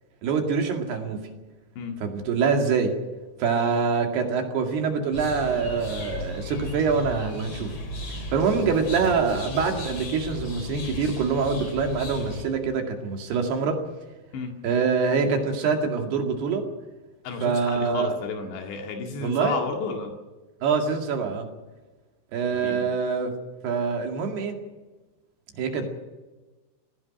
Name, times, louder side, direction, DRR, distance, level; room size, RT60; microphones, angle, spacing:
voice 1, 0.2-1.2 2.0-2.9 3.4-7.7 8.1-13.8 14.6-16.7 17.4-18.2 19.2-19.6 20.6-21.5 22.3-23.3 23.6-24.6 25.5-25.9, right 5 dB, 65° right, 4 dB, 4.1 m, -25 dB
sound 1, 5.1-12.4, left 2 dB, 35° left, 4.3 m, -35 dB
voice 2, 17.2-20.1 22.5-22.9, left 5 dB, 75° left, 3 dB, 4.2 m, -32 dB
18.5 x 16.5 x 8.8 m, 1.2 s
omnidirectional pair, 5.2 m